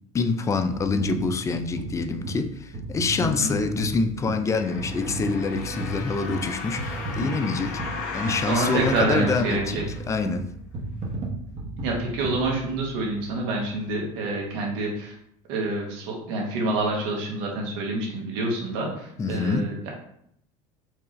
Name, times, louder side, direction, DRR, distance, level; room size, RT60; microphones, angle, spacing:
voice 1, 0.1-7.8 8.1-10.5 19.2-19.7, left 4 dB, 20° left, 9 dB, 0.3 m, -26 dB
sound 1, 0.7-13.1 13.7-13.8, right 2 dB, 40° right, 1.0 m, -34 dB
voice 2, 3.2-3.5 8.5-9.8 11.8-15.1 15.5-19.9, right 2 dB, 75° right, -1 dB, 1.3 m, -27 dB
sound 2, 4.5-10.4 11.0-11.1, left 4 dB, 55° left, 1.0 m, -35 dB
4.6 x 2.4 x 3.1 m, 0.71 s
supercardioid pair, 110°, 17 cm